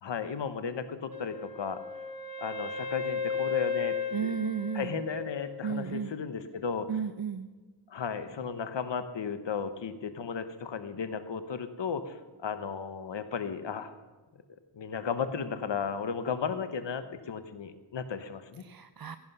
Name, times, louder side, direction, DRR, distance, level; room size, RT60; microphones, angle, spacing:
voice 1, 0.0-1.8 2.4-3.9 4.2-4.3 4.7-6.9 7.9-13.9 14.7-18.6, left 6 dB, 65° left, 10 dB, 1.2 m, -35 dB
Wind instrument woodwind instrument, 1.1-5.9, left 5 dB, 50° left, 2.1 m, -36 dB
voice 2, 4.1-4.9 5.6-6.1 6.9-7.5 18.6-19.2, right 6 dB, 50° right, 11 dB, 0.7 m, -33 dB
16.0 x 11.5 x 5.5 m, 1.2 s
cardioid pair, 45°, 46 cm